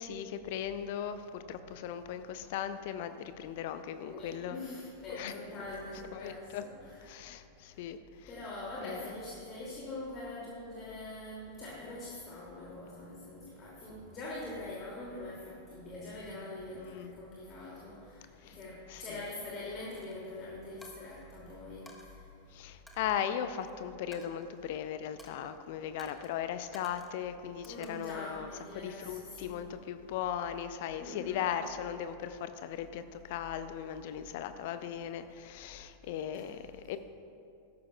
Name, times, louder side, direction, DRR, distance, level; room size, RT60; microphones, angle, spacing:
voice 1, 0.0-4.6 5.1-5.3 6.1-6.6 7.0-8.0 8.8-9.1 16.8-17.1 18.4-18.6 18.9-19.0 22.5-28.5 28.7-37.0, left 9 dB, 50° left, 10 dB, 0.5 m, -38 dB
voice 2, 4.1-7.2 7.7-7.8 8.3-22.3 27.7-29.7 31.0-31.4 36.3-36.5, left 2 dB, 30° left, -6 dB, 2.6 m, -44 dB
Coin (dropping), 20.0-20.2 20.8-21.4 21.9-22.1 22.9-23.7 24.1-24.8 25.2-25.5 26.0-26.3 26.7-27.2 27.6-28.3, left 1 dB, 5° left, 1.4 m, -55 dB
16.5 x 13.5 x 2.4 m, 2.5 s
figure-of-eight pair, 90°, 0 cm